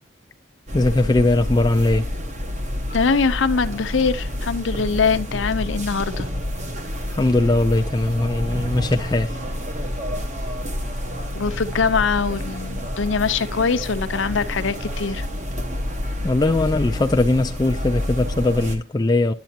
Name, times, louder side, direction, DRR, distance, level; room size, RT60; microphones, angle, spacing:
voice 1, 0.7-2.1 7.1-9.4 16.2-19.3, left 2 dB, 20° left, 0.4 m, -20 dB
sound 1, 0.7-18.8, left 1 dB, 35° right, 1.2 m, -29 dB
voice 2, 2.9-6.3 11.3-15.3, left 5 dB, 75° left, 0.7 m, -22 dB
10.5 x 8.2 x 2.8 m
head